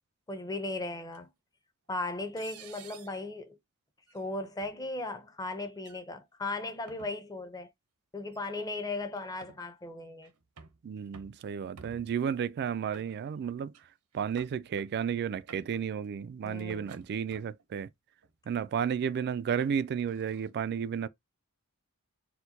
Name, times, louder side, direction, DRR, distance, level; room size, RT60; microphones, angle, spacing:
voice 1, 0.3-1.3 1.9-3.6 4.1-7.7 8.1-10.3 16.4-17.0, left 2 dB, 15° left, 0.6 m, -37 dB
sound 1, 1.1-1.2 2.4-3.2 4.1-4.2 4.6-4.7 5.8-6.0 6.7-7.1 8.3-8.4 9.2-9.6 10.2-10.8 11.1-11.4 11.8-12.3 12.9-13.5 13.7-13.9 14.1-14.9 15.3-15.8 16.6-17.6 18.2-18.6 19.2-20.5, right 5 dB, 80° right, 0.8 m, -53 dB
voice 2, 10.8-13.7 14.1-17.9 18.5-21.1, right 7 dB, 45° right, 0.3 m, -32 dB
4.4 x 2.2 x 3.9 m
head